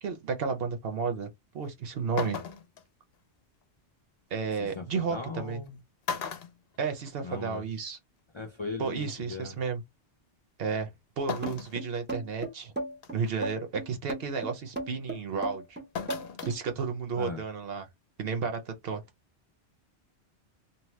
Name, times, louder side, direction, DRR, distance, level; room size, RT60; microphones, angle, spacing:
voice 1, 0.0-2.4 4.3-5.6 6.8-8.0 8.8-9.8 10.6-12.7 13.1-15.8 16.4-17.9 18.2-19.0, right 5 dB, 60° right, 0.9 m, -32 dB
sound 1, 1.6-1.7 2.2-2.8 4.4-4.5 5.5-5.7 6.0-7.4 7.8-7.9 9.1-9.2 11.3-11.8 12.3-12.4 13.0-13.3 15.9-16.6 16.9-17.0, left 6 dB, 65° left, 0.7 m, -36 dB
voice 2, 4.6-5.8 7.2-7.7 8.3-9.6 17.2-17.4, left 4 dB, 40° left, 0.4 m, -38 dB
sound 2, 11.4-16.6, right 2 dB, 10° right, 0.6 m, -35 dB
2.8 x 2.1 x 3.1 m
omnidirectional pair, 1.1 m